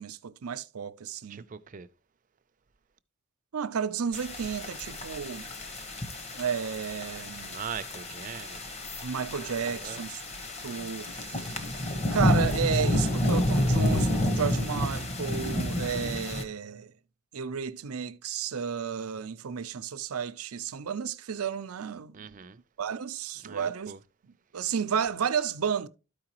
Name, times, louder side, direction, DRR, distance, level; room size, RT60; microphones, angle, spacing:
voice 1, 0.0-1.5 3.5-5.5 6.4-7.6 9.0-10.2 10.6-16.9 17.3-22.4 22.8-24.0 24.2-25.9, right 7 dB, 90° right, 0.5 m, -32 dB
voice 2, 1.3-1.9 7.5-8.8 9.7-10.0 22.1-22.6 23.4-24.0, right 7 dB, 35° right, 0.4 m, -41 dB
sound 1, 4.1-16.4, left 1 dB, 30° left, 1.0 m, -30 dB
12.5 x 4.8 x 2.9 m
head